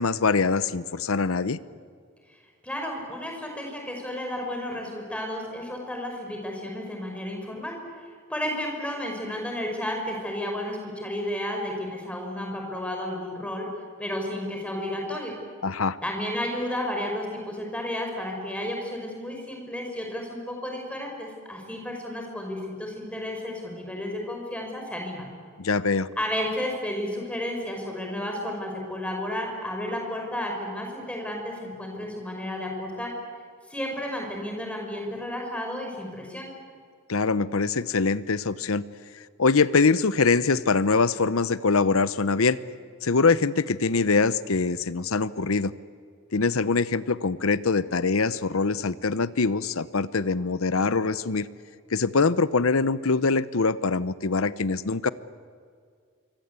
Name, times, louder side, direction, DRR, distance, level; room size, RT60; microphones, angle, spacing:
voice 1, 0.0-1.6 15.6-16.0 25.6-26.1 37.1-38.8 39.4-42.6 43.0-45.7 46.3-51.5 51.9-55.1, left 4 dB, 75° left, 16 dB, 0.8 m, -23 dB
voice 2, 2.6-13.7 14.0-15.4 16.0-25.3 26.2-33.1 33.7-36.5, left 1 dB, 5° left, 1 dB, 5.4 m, -32 dB
26.0 x 24.5 x 8.3 m, 2.1 s
head